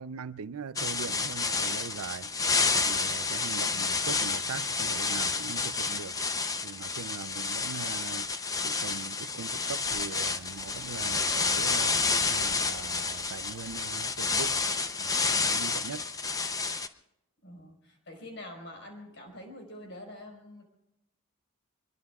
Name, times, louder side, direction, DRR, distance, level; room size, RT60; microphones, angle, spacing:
voice 1, 0.0-2.3 2.7-6.2 6.6-14.6 15.0-16.1, right 5 dB, 90° right, 0.5 m, -41 dB
sound 1, 0.8-16.9, left 4 dB, 15° left, 0.6 m, -30 dB
Breathing, 9.7-14.7, equal, ahead, 2.2 m, -51 dB
voice 2, 17.4-20.6, left 1 dB, 55° left, 4.9 m, -46 dB
24.5 x 22.0 x 2.4 m
head